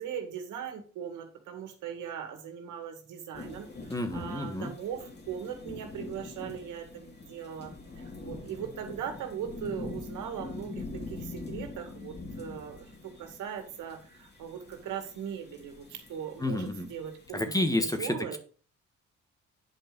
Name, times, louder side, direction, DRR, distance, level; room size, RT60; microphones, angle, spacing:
voice 1, 0.0-18.4, right 8 dB, 85° right, 5 dB, 2.2 m, -39 dB
sound 1, 3.3-17.7, left 3 dB, 35° left, 2.8 m, -44 dB
voice 2, 3.9-4.7 16.4-16.9 17.3-18.4, left 1 dB, 10° left, 7 dB, 1.4 m, -30 dB
9.5 x 5.3 x 5.2 m, 0.39 s
cardioid pair, 90°, 30 cm